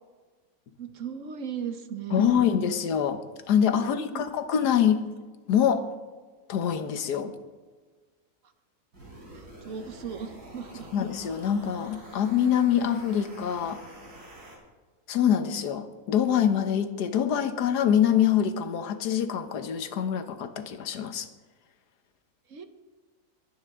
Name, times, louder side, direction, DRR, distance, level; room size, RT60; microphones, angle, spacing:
voice 1, 0.8-2.4 3.7-4.2 9.3-10.9 22.5-22.7, right 6 dB, 55° right, 8 dB, 1.2 m, -37 dB
voice 2, 2.1-3.2 3.5-5.1 5.5-5.9 6.5-7.3 10.9-13.8 15.1-21.3, left 9 dB, 90° left, 9 dB, 1.5 m, -25 dB
sound 1, 8.9-14.6, right 1 dB, 90° right, 4.6 m, -47 dB
22.5 x 9.6 x 3.7 m, 1.4 s
omnidirectional pair, 1.7 m